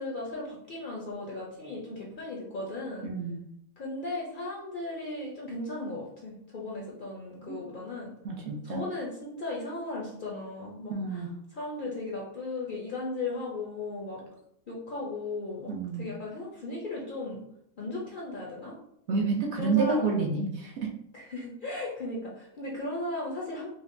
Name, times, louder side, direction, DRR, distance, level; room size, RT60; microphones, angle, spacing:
voice 1, 0.0-3.1 3.8-8.1 8.6-11.2 11.5-14.2 14.7-15.7 16.0-17.4 17.8-18.8 19.6-20.1 21.1-23.7, left 2 dB, 50° left, -4 dB, 0.6 m, -36 dB
voice 2, 3.0-3.4 7.5-7.6 8.2-8.8 10.9-11.3 15.7-16.0 19.1-20.9, right 4 dB, 65° right, 1 dB, 0.9 m, -29 dB
5.1 x 2.1 x 2.5 m, 0.78 s
omnidirectional pair, 1.4 m